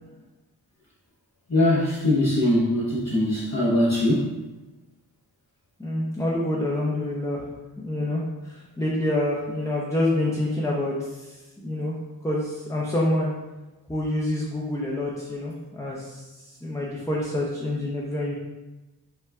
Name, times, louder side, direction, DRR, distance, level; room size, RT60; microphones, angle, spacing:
voice 1, 1.5-4.3, left 1 dB, 45° left, -7 dB, 0.8 m, -21 dB
voice 2, 5.8-7.4 7.8-8.2 8.5-11.3 11.6-11.9 12.2-13.3 13.9-16.2 16.6-18.3, left 1 dB, 10° left, -5 dB, 0.6 m, -27 dB
5.6 x 2.3 x 3.4 m, 1.1 s
wide cardioid pair, 95°, 39 cm